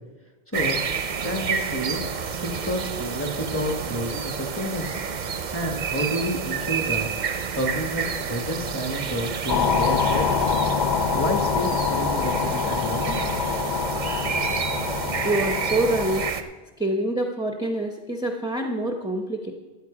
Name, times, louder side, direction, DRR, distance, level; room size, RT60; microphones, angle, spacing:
sound 1, 0.5-16.4, right 6 dB, 50° right, 0.7 m, -29 dB
voice 1, 1.2-2.1 2.4-4.9 5.5-7.1 7.5-10.3 11.1-13.2, equal, 15° left, 3 dB, 1.1 m, -29 dB
sound 2, 9.5-16.3, left 6 dB, 55° left, 0.7 m, -25 dB
voice 2, 15.2-16.3 16.8-19.5, right 2 dB, 5° right, 3 dB, 0.6 m, -26 dB
14.0 x 8.6 x 4.9 m, 1.2 s
omnidirectional pair, 1.0 m